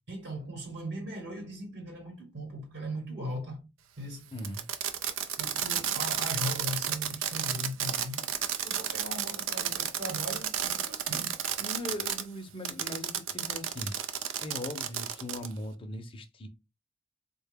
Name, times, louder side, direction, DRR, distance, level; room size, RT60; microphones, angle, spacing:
voice 1, 0.1-3.7 4.0-4.3 5.4-11.4, equal, 55° right, 1.1 m, -39 dB
voice 2, 4.3-4.6 11.6-13.9 14.4-16.5, left 1 dB, 25° left, 0.6 m, -39 dB
Fireworks, 4.4-12.2 12.6-15.5, right 9 dB, 90° right, 0.5 m, -32 dB
4.1 x 2.2 x 3.4 m
head